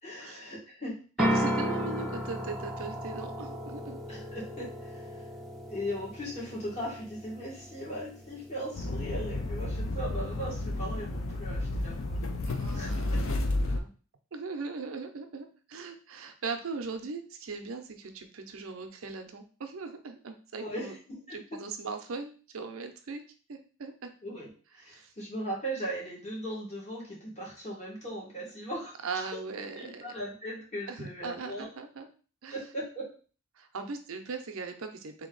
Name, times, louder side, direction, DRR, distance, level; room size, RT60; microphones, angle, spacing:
voice 1, 0.0-1.0 4.1-5.1 5.7-12.4 12.7-13.3 20.6-21.6 24.2-24.5 24.7-28.9 29.8-31.7 32.5-33.2, equal, 30° left, -5 dB, 1.7 m, -38 dB
sound 1, 1.2-12.9, equal, ahead, 0.4 m, -36 dB
voice 2, 1.2-4.0 12.4-13.9 14.3-21.0 21.3-23.2 23.5-24.1 24.9-25.1 29.0-30.1 30.9-32.1 32.4-32.5 33.6-35.3, right 4 dB, 75° right, 6 dB, 0.6 m, -39 dB
sound 2, 8.7-13.8, left 2 dB, 70° left, 0.5 m, -31 dB
3.4 x 2.9 x 3.8 m, 0.38 s
head